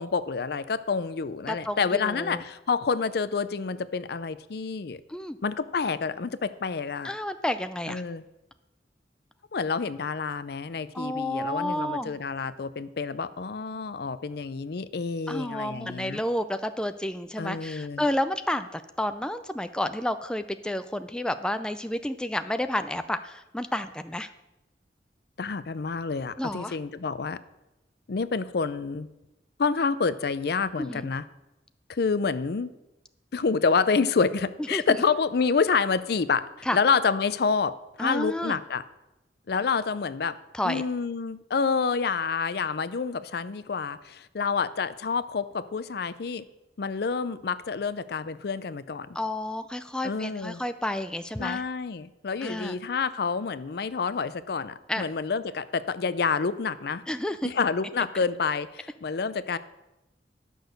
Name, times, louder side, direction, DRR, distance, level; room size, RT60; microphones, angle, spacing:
voice 1, 0.0-5.0 5.4-7.1 7.9-8.2 9.5-16.2 17.4-18.0 25.4-27.4 28.1-29.1 29.6-31.2 31.9-32.7 33.3-38.8 39.5-40.4 40.6-46.4 46.8-49.1 50.0-50.6 51.4-57.0 57.4-59.6, left 5 dB, 60° left, 14 dB, 0.5 m, -28 dB
voice 2, 1.5-2.4 5.1-5.4 7.0-8.0 10.9-12.2 15.3-24.3 26.4-26.8 30.8-31.1 34.7-34.8 36.7-36.8 38.0-38.6 40.5-40.8 49.2-51.6 52.4-52.8 54.9-55.0 57.1-57.5, left 1 dB, 5° left, 9 dB, 0.4 m, -30 dB
11.5 x 6.2 x 6.5 m, 0.96 s
head